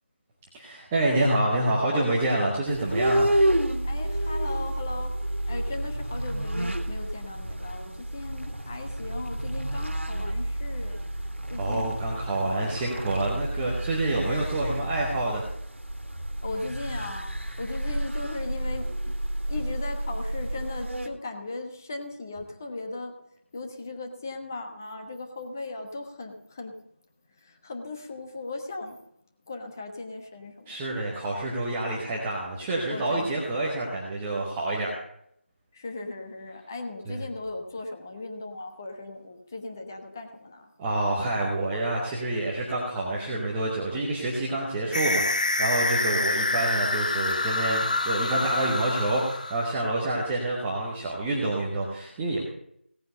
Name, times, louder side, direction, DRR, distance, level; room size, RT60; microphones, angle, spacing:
voice 1, 0.5-3.3 11.6-15.4 30.7-35.0 37.1-37.2 40.8-52.4, right 2 dB, 5° right, -4 dB, 0.7 m, -27 dB
sound 1, 2.7-21.1, right 1 dB, 75° right, 1.9 m, -30 dB
voice 2, 3.8-5.1 5.5-11.0 11.5-12.0 12.4-12.8 16.4-17.3 17.6-19.2 19.5-23.2 23.5-26.7 27.4-29.0 29.5-30.9 32.9-33.7 35.7-40.7 48.4-48.6, left 3 dB, 15° left, 4 dB, 1.2 m, -37 dB
sound 2, 44.9-49.8, left 2 dB, 40° left, 1.0 m, -27 dB
17.5 x 9.3 x 6.6 m, 0.73 s
figure-of-eight pair, 170°, 7 cm